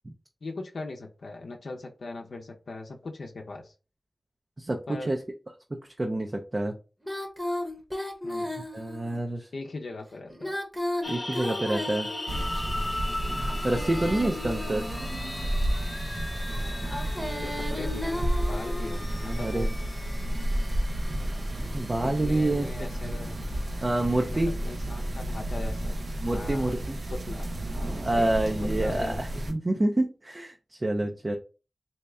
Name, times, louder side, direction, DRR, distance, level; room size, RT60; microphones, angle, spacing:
voice 1, 0.4-3.7 4.9-5.1 8.2-8.5 9.5-10.5 16.4-19.7 21.5-21.6 22.0-23.4 24.3-26.0 26.3-26.7 27.1-27.5 28.1-28.3 28.8-29.5, left 3 dB, 90° left, 2 dB, 0.6 m, -40 dB
voice 2, 6.0-6.7 8.7-9.5 11.1-12.1 13.3-14.8 19.2-19.7 21.6-22.7 23.8-24.5 26.2-27.0 28.0-31.4, right 1 dB, 40° right, 2 dB, 0.6 m, -27 dB
Female singing, 7.0-9.2 10.3-12.6 13.4-15.6 16.8-19.1, left 1 dB, 10° right, 0.9 m, -35 dB
sound 1, 11.0-24.4, left 1 dB, 30° left, 0.5 m, -39 dB
sound 2, 12.3-29.5, right 1 dB, 75° right, 0.8 m, -32 dB
3.2 x 2.8 x 3.4 m, 0.32 s
wide cardioid pair, 65°, 0 cm